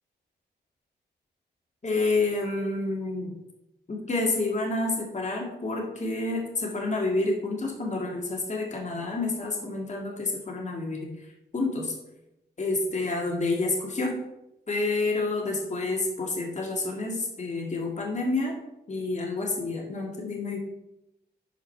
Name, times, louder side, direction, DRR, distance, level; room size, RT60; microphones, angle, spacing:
voice 1, 1.8-3.3 3.9-11.1 11.5-11.9 12.6-14.1 14.7-18.5 18.9-20.6, left 2 dB, 40° left, 0 dB, 2.0 m, -29 dB
11.5 x 5.0 x 4.5 m, 0.88 s
cardioid pair, 65°, 18 cm